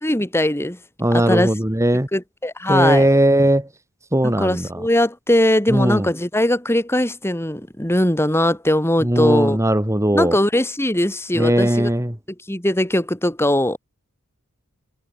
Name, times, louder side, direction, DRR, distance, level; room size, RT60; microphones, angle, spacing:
voice 1, 0.0-0.8 1.1-1.5 2.1-3.1 4.2-9.6 10.1-11.9 12.5-13.8, left 1 dB, 10° left, 2.8 m, -20 dB
voice 2, 1.0-2.1 2.7-3.7 4.1-4.7 5.7-6.1 9.0-10.3 11.3-12.2, right 1 dB, 15° right, 2.5 m, -18 dB
head